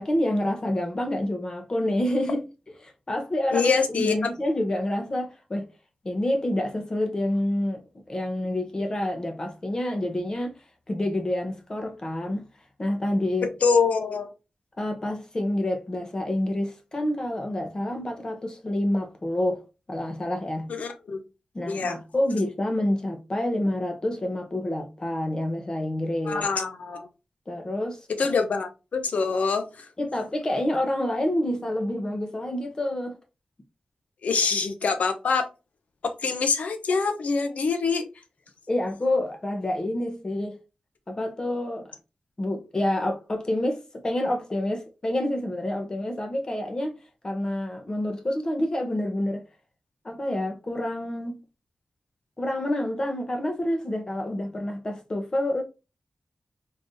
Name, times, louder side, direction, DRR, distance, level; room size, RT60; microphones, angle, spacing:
voice 1, 0.0-2.5 2.8-5.7 6.0-10.5 10.9-12.5 12.8-13.5 14.8-19.6 19.9-20.7 21.5-26.4 27.5-28.1 30.0-33.2 38.7-40.6 41.1-41.9 42.4-49.4 50.0-51.4 52.4-55.6, left 1 dB, 30° left, 0.9 m, -28 dB
voice 2, 3.5-4.2 13.6-14.3 20.7-21.2 21.7-22.0 26.2-27.1 28.2-29.9 34.2-35.5 36.0-38.1, left 5 dB, 80° left, 0.7 m, -25 dB
3.9 x 3.3 x 2.6 m
wide cardioid pair, 125°, 2 cm